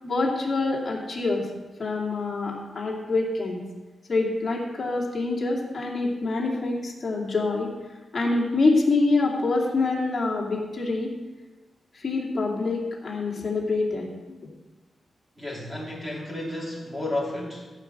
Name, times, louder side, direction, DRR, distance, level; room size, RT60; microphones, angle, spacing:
voice 1, 0.0-1.4 1.8-3.6 4.1-7.7 8.1-11.1 11.9-14.4, left 3 dB, 30° left, -3 dB, 2.6 m, -26 dB
voice 2, 15.4-17.7, left 1 dB, 5° right, -4 dB, 2.9 m, -32 dB
15.0 x 5.1 x 7.8 m, 1.2 s
wide cardioid pair, 170°, 0 cm